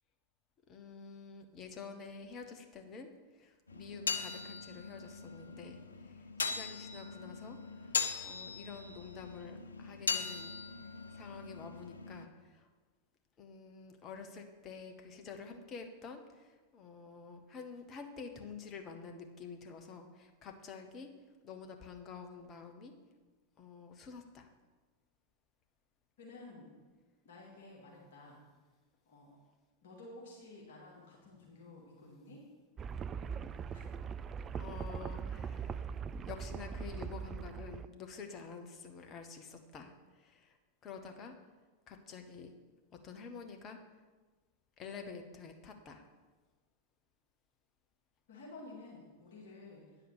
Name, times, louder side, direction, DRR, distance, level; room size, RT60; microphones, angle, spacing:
voice 1, 0.7-10.5 11.1-12.7 13.4-21.1 21.4-22.9 23.6-24.5 34.5-35.9 36.3-40.6 40.8-41.3 41.9-42.5 42.9-43.8 44.8-46.0, left 5 dB, 30° left, 4 dB, 1.1 m, -49 dB
sound 1, 3.7-12.3, left 5 dB, 75° left, 0.5 m, -40 dB
voice 2, 26.2-26.7 27.2-28.4 29.1-29.4 29.8-32.5 33.7-33.8 48.3-49.9, left 2 dB, 60° left, -3 dB, 2.3 m, -52 dB
sound 2, 32.8-37.9, right 6 dB, 25° right, 0.3 m, -41 dB
9.5 x 4.9 x 6.5 m, 1.3 s
figure-of-eight pair, 90°, 0 cm